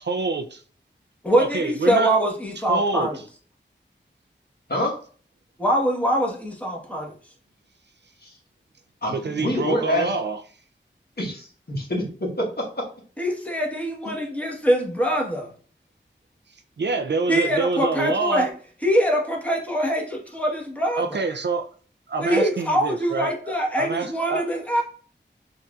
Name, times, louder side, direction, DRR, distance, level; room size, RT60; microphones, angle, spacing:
voice 1, 0.1-0.6 1.4-2.1 2.7-3.2 9.1-10.4 16.8-18.5 20.9-21.7 22.1-24.5, right 4 dB, 60° right, 0.4 m, -26 dB
voice 2, 1.2-3.2 5.6-7.1 13.2-15.5 17.3-18.5 18.8-21.2 22.2-24.8, equal, 5° left, 1.1 m, -23 dB
voice 3, 9.0-10.1 11.2-12.8, left 1 dB, 55° left, 1.3 m, -26 dB
5.5 x 2.6 x 2.3 m
wide cardioid pair, 45°, 20 cm